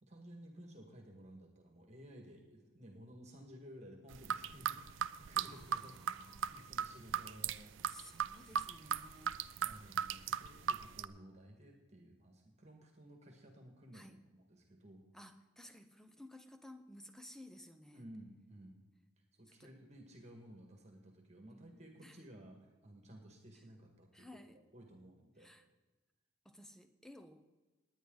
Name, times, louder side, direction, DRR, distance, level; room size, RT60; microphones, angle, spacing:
voice 1, 0.0-7.8 9.6-15.1 17.9-18.8 19.3-25.5, right 1 dB, 35° right, 3 dB, 1.8 m, -56 dB
sound 1, 4.1-11.1, right 8 dB, 70° right, 0.5 m, -37 dB
voice 2, 5.5-6.5 7.9-9.3 13.9-14.2 15.1-18.1 19.5-19.7 21.5-22.2 23.5-23.6 24.1-24.6 25.4-25.7 26.4-27.5, left 1 dB, ahead, 8 dB, 0.7 m, -56 dB
19.0 x 9.8 x 4.0 m, 1.2 s
head